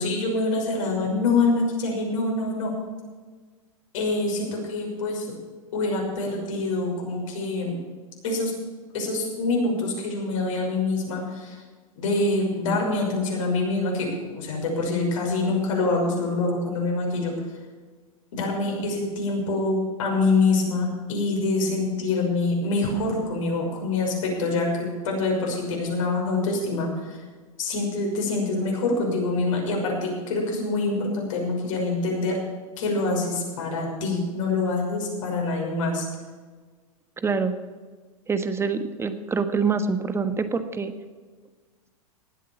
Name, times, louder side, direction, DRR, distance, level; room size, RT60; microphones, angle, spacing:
voice 1, 0.0-2.7 3.9-5.3 5.7-7.7 8.2-8.5 8.9-11.6 12.0-17.4 18.3-27.2 27.6-32.4 32.8-36.1, left 3 dB, 65° left, 0 dB, 6.1 m, -25 dB
voice 2, 37.2-37.5 38.3-40.9, right 5 dB, 15° right, 9 dB, 1.4 m, -25 dB
18.5 x 8.4 x 7.0 m, 1.4 s
hypercardioid pair, 105°, 18 cm